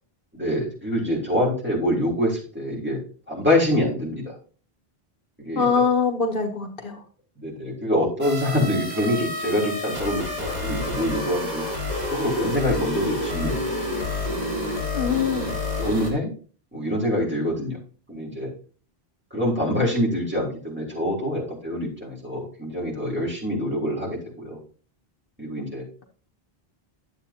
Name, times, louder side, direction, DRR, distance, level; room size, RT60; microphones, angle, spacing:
voice 1, 0.3-3.0 3.3-4.4 5.4-5.8 7.4-11.6 12.1-13.6 15.8-16.3 16.7-17.8 18.1-18.5 19.3-24.6 25.4-25.8, left 1 dB, 10° right, -5 dB, 3.4 m, -25 dB
voice 2, 5.5-7.0 14.9-15.5, left 5 dB, 60° left, 2 dB, 1.3 m, -23 dB
sound 1, 8.2-16.1, left 1 dB, 40° right, 2.4 m, -29 dB
11.5 x 7.8 x 2.8 m, 0.41 s
omnidirectional pair, 1.0 m